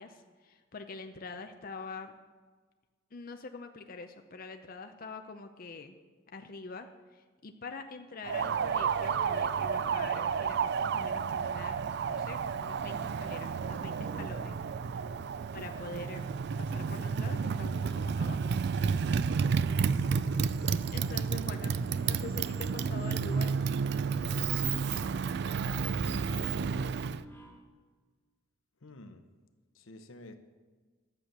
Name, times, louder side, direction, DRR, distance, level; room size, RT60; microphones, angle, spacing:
voice 1, 0.0-2.2 3.1-6.0 6.3-14.5 15.5-16.2 16.6-18.5 20.9-23.5, left 3 dB, 45° left, 0.6 m, -45 dB
Motorcycle, 8.2-27.2, right 6 dB, 55° right, 0.3 m, -31 dB
sound 1, 20.2-27.7, right 1 dB, 10° left, 1.5 m, -55 dB
voice 2, 26.3-27.0 28.8-29.2 29.7-30.4, left 2 dB, 85° left, 0.9 m, -50 dB
11.5 x 7.5 x 6.7 m
head